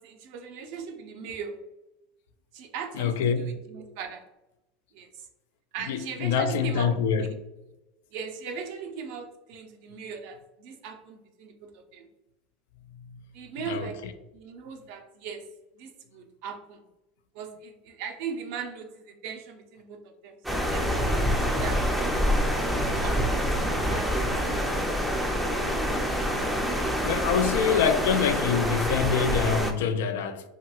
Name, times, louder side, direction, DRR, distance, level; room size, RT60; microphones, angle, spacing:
voice 1, 0.0-1.6 2.5-4.2 4.9-5.3 5.7-7.4 8.1-12.1 13.3-14.0 14.3-15.5 15.7-16.8 17.3-21.8 22.3-23.4 23.9-24.9, right 6 dB, 65° right, 0.5 m, -39 dB
voice 2, 3.0-3.5 5.9-7.3 13.7-13.9 27.0-30.4, left 7 dB, 80° left, 0.3 m, -25 dB
sound 1, 20.4-29.7, equal, 5° right, 0.4 m, -26 dB
2.8 x 2.8 x 2.3 m
supercardioid pair, 115°, 0 cm